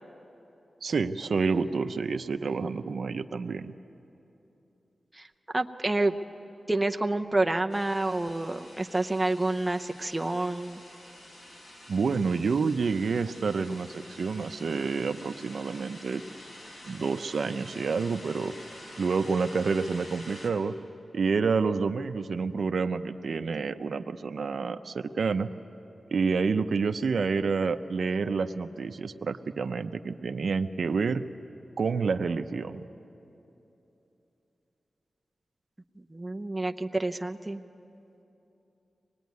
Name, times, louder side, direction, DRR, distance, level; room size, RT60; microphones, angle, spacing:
voice 1, 0.8-3.7 11.9-16.2 16.8-18.5 19.0-20.7 21.1-25.5 26.1-31.2 31.8-32.8, right 5 dB, 65° right, 8 dB, 0.7 m, -28 dB
voice 2, 5.5-6.2 6.7-10.8 36.1-37.6, right 2 dB, 15° right, 4 dB, 0.7 m, -28 dB
sound 1, 7.7-20.5, left 1 dB, 75° left, 5.0 m, -48 dB
24.5 x 20.0 x 9.5 m, 3.0 s
wide cardioid pair, 155°, 0 cm